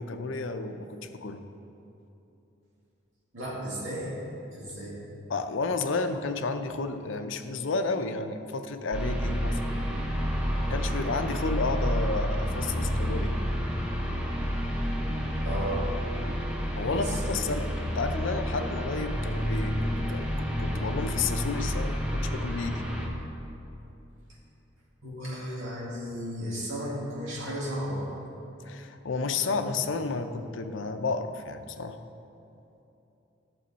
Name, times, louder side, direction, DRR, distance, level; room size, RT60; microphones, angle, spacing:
voice 1, 0.0-1.4 5.3-9.7 10.7-13.3 16.8-22.8 28.6-32.0, left 3 dB, 75° left, 8 dB, 0.6 m, -31 dB
voice 2, 3.3-4.1 4.5-5.0 15.4-15.9 16.9-17.2 25.0-28.1 29.5-29.6, equal, 75° right, -6 dB, 2.2 m, -34 dB
sound 1, 8.9-23.1, equal, 5° right, 0.9 m, -30 dB
11.5 x 6.9 x 4.1 m, 2.9 s
head